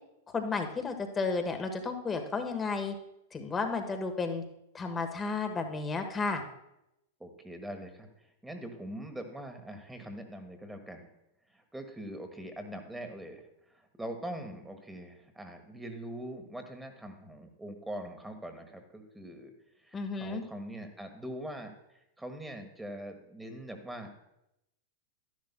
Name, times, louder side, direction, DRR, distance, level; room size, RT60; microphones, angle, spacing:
voice 1, 0.3-2.9 3.3-4.4 4.7-6.4 19.9-20.4, left 4 dB, 20° left, 6 dB, 1.2 m, -32 dB
voice 2, 7.2-11.1 11.5-19.5 19.8-24.2, right 1 dB, 5° right, 5 dB, 1.3 m, -43 dB
12.0 x 11.0 x 2.2 m, 0.85 s
hypercardioid pair, 105°, 0 cm